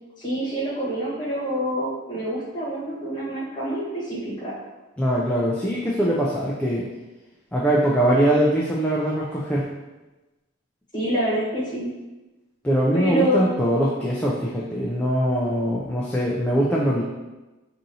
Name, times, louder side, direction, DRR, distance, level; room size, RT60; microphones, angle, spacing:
voice 1, 0.2-4.5 10.9-11.9 12.9-13.6, right 1 dB, 20° left, -8 dB, 1.3 m, -26 dB
voice 2, 5.0-6.8 7.5-9.7 12.6-17.0, right 1 dB, 5° left, -6 dB, 0.3 m, -22 dB
4.8 x 2.6 x 2.7 m, 1.1 s
head